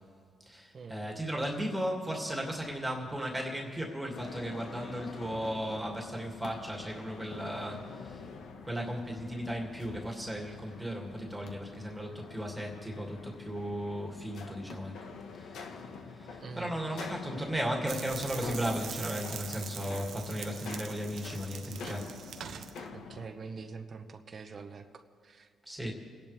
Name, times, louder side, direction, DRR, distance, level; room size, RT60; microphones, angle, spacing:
voice 1, 0.5-8.2 8.6-15.1 15.4-15.9 16.1-22.1 25.7-25.9, equal, 5° right, 0 dB, 2.5 m, -36 dB
sound 1, 4.1-23.2, left 5 dB, 70° left, 1.4 m, -46 dB
voice 2, 16.4-16.7 22.9-25.5, right 4 dB, 45° right, 7 dB, 1.0 m, -45 dB
sound 2, 17.9-22.8, right 8 dB, 65° right, 0.8 m, -43 dB
29.5 x 10.5 x 3.5 m, 2.2 s
cardioid pair, 90°, 0 cm